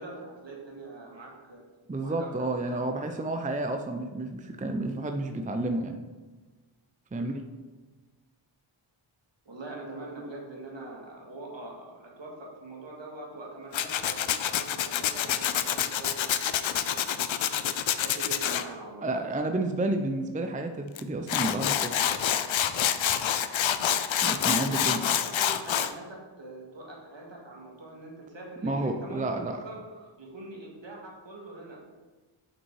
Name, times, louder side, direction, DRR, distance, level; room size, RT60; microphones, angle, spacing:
voice 1, 0.0-1.7 2.0-3.0 7.1-7.4 9.5-17.3 18.0-19.0 24.5-31.9, right 2 dB, 60° right, -2 dB, 1.9 m, -43 dB
voice 2, 1.9-6.0 7.1-7.4 19.0-21.9 24.2-25.0 28.6-29.6, right 2 dB, 15° right, 6 dB, 0.5 m, -30 dB
Tools, 13.7-18.6 21.0-21.1 21.3-25.9, left 10 dB, 70° left, 0.5 m, -27 dB
5.9 x 5.6 x 4.7 m, 1.3 s
wide cardioid pair, 70°, 49 cm